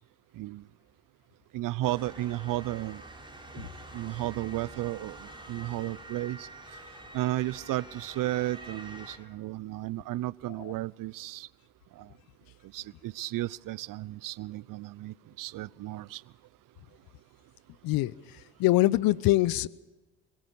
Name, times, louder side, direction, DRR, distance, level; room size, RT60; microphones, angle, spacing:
voice 1, 1.5-3.0 3.5-6.5 7.1-11.5 12.0-12.1 12.7-16.2, right 16 dB, 55° right, 23 dB, 0.7 m, -34 dB
Motor vehicle (road) / Siren, 1.8-9.2, right 2 dB, 10° right, 5.0 m, -46 dB
voice 2, 18.6-19.7, left 17 dB, 60° left, 21 dB, 0.8 m, -23 dB
23.0 x 18.0 x 6.9 m, 1.2 s
hypercardioid pair, 55°, 40 cm